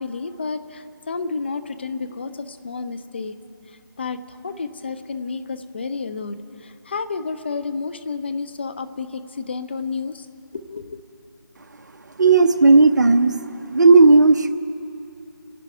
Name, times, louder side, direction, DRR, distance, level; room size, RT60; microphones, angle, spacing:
voice 1, 0.0-3.3 3.7-10.3 10.5-11.0, left 4 dB, 30° left, 9 dB, 0.5 m, -31 dB
voice 2, 12.2-13.3 13.7-14.5, right 3 dB, 55° right, 9 dB, 0.9 m, -13 dB
27.5 x 11.0 x 4.8 m, 2.7 s
figure-of-eight pair, 160°, 12 cm